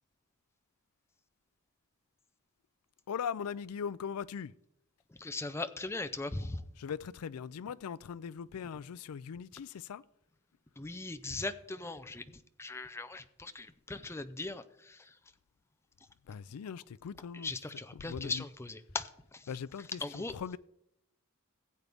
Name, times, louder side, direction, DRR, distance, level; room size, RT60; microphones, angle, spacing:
voice 1, 3.1-4.5 6.8-10.0 16.3-17.5 18.0-18.4 19.5-20.6, left 7 dB, 85° left, 0.4 m, -40 dB
voice 2, 5.1-6.7 10.8-12.2 12.6-15.2 17.3-19.5 19.8-20.3, left 3 dB, 10° left, 0.5 m, -39 dB
16.0 x 8.3 x 3.5 m
head